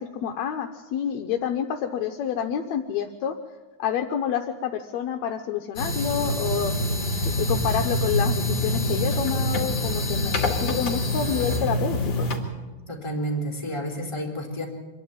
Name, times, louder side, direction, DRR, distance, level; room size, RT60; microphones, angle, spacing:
voice 1, 0.0-3.4 3.8-6.7 7.2-12.3, left 8 dB, 75° left, 4 dB, 2.0 m, -28 dB
sound 1, 5.8-12.4, left 1 dB, 35° left, 3.0 m, -25 dB
voice 2, 12.9-14.7, right 1 dB, 10° left, -2 dB, 3.6 m, -30 dB
25.5 x 11.5 x 9.5 m, 1.2 s
omnidirectional pair, 3.4 m